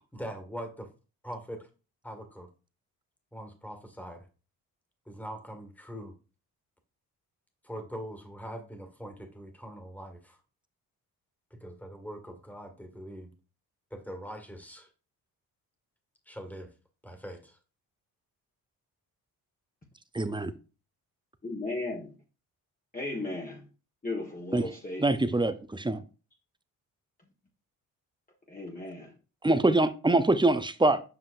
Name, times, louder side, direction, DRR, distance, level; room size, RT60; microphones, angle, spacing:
voice 1, 0.1-0.9 1.2-1.7 2.0-2.5 3.3-4.2 5.1-6.1 7.6-10.4 11.6-13.3 13.9-14.9 16.3-16.7 17.0-17.6, equal, 5° left, 1.8 m, -42 dB
voice 2, 20.1-20.5 24.5-24.6 25.0-26.0 29.4-31.0, right 2 dB, 10° right, 0.7 m, -24 dB
voice 3, 21.4-22.1 22.9-23.7 24.0-25.0 28.5-29.1, left 2 dB, 20° left, 1.5 m, -35 dB
7.8 x 5.5 x 2.6 m
supercardioid pair, 55°, 39 cm